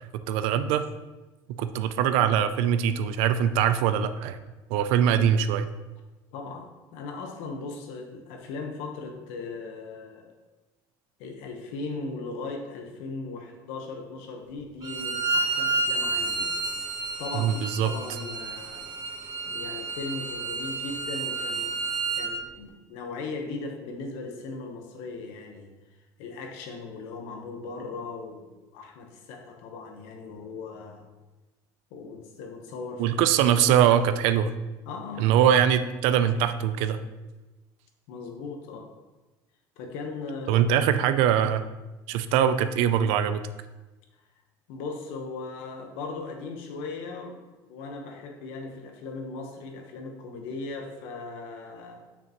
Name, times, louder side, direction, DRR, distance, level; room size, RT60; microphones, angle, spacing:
voice 1, 0.3-0.8 1.5-4.4 4.7-5.7 17.3-17.9 33.0-34.5 35.2-37.0 40.5-41.6 42.1-43.4, right 9 dB, 80° right, 11 dB, 0.5 m, -22 dB
voice 2, 6.3-10.3 11.2-16.6 17.2-18.9 19.5-21.8 22.1-25.7 26.2-31.0 31.9-33.1 34.9-35.3 38.1-38.9 39.8-40.7 44.7-52.1, left 3 dB, 80° left, 3 dB, 1.1 m, -38 dB
Bowed string instrument, 14.8-22.3, right 3 dB, 40° right, 1.1 m, -30 dB
6.5 x 6.0 x 3.0 m, 1.1 s
supercardioid pair, 110°, 10 cm